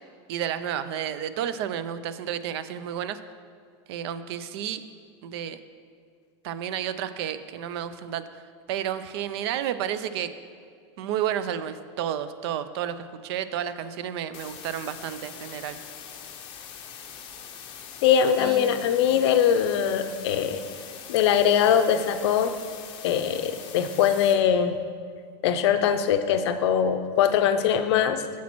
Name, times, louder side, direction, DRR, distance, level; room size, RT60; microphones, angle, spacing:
voice 1, 0.3-3.2 3.9-4.8 5.2-5.6 6.4-8.4 8.7-10.3 11.0-15.8 18.4-19.4, right 10 dB, 65° right, 12 dB, 0.4 m, -31 dB
sound 1, 14.3-24.3, left 8 dB, 35° left, 0.7 m, -42 dB
voice 2, 18.0-20.6 21.1-22.5 23.0-24.8 25.4-28.2, left 8 dB, 70° left, 9 dB, 0.5 m, -22 dB
8.2 x 7.2 x 3.0 m, 2.1 s
supercardioid pair, 165°, 15 cm